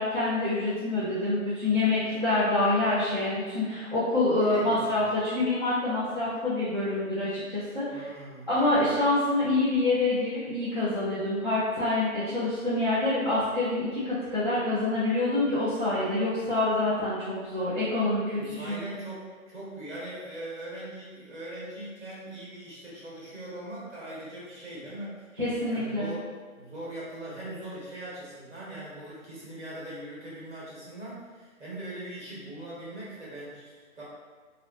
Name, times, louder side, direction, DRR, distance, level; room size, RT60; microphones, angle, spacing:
voice 1, 0.0-8.1 8.5-18.8 25.4-26.1, left 2 dB, 40° right, -14 dB, 0.5 m, -26 dB
voice 2, 4.4-5.2 7.9-9.0 18.4-25.3 25.7-26.2 26.6-34.0, right 1 dB, 55° right, -8 dB, 1.2 m, -41 dB
2.7 x 2.2 x 2.5 m, 1.5 s
figure-of-eight pair, 170°, 42 cm